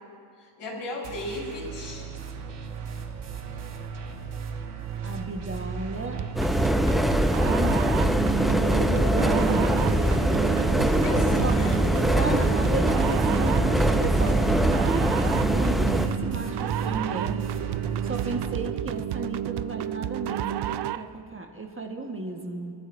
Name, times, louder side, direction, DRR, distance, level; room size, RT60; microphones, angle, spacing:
voice 1, 0.4-2.1 11.0-12.5, left 1 dB, 80° left, -1 dB, 4.5 m, -36 dB
sound 1, 1.0-18.5, right 6 dB, 90° right, 1.8 m, -35 dB
voice 2, 5.0-6.2 7.4-9.7 10.8-11.5 12.2-17.4 18.0-22.7, right 3 dB, 25° right, 3 dB, 1.4 m, -33 dB
sound 2, 6.2-21.1, right 12 dB, 55° right, 0.5 m, -31 dB
sound 3, 6.4-16.1, equal, ahead, 0.6 m, -23 dB
29.5 x 12.0 x 2.6 m, 2.3 s
cardioid pair, 100°, 49 cm